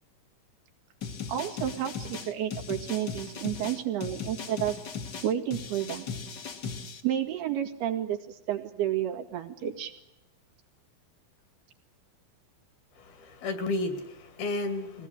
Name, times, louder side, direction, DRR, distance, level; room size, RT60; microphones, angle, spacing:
sound 1, 1.0-7.0, left 6 dB, 50° left, 1.4 m, -38 dB
voice 1, 1.3-4.8 5.2-6.1 7.0-9.9, right 11 dB, 85° right, 4 dB, 4.1 m, -31 dB
voice 2, 13.0-15.1, left 2 dB, 75° left, 9 dB, 4.7 m, -32 dB
22.0 x 18.0 x 9.9 m, 0.87 s
omnidirectional pair, 4.4 m